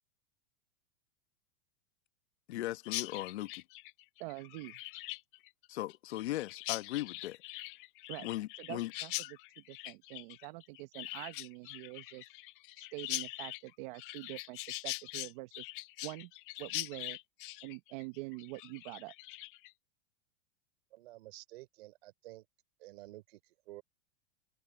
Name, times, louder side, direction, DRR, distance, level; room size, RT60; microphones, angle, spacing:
voice 1, 2.5-3.6 5.7-7.4 8.2-8.9, left 15 dB, 70° left, 1.3 m, -38 dB
Chirp tweet, 2.8-19.7, left 20 dB, 50° left, 1.1 m, -43 dB
voice 2, 4.2-4.8 8.1-8.3 8.6-12.3 12.8-15.7 16.0-16.3 16.6-17.2 17.6-19.1, right 23 dB, 45° right, 1.2 m, -45 dB
voice 3, 20.9-22.5 22.8-23.8, right 18 dB, 60° right, 4.5 m, -51 dB
supercardioid pair, 150°, 34 cm